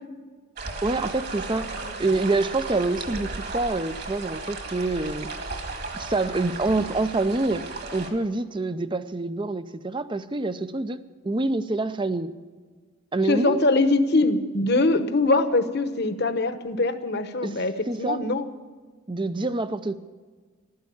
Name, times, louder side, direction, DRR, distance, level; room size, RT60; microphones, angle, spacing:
sound 1, 0.6-8.1, right 3 dB, 50° right, 2.2 m, -35 dB
voice 1, 0.8-1.7 2.0-5.3 5.9-12.3 13.1-13.6 17.4-18.2 19.1-20.0, right 2 dB, 20° right, 13 dB, 0.6 m, -26 dB
voice 2, 13.3-18.4, left 2 dB, 50° left, 9 dB, 1.1 m, -23 dB
15.0 x 13.0 x 7.1 m, 1.5 s
head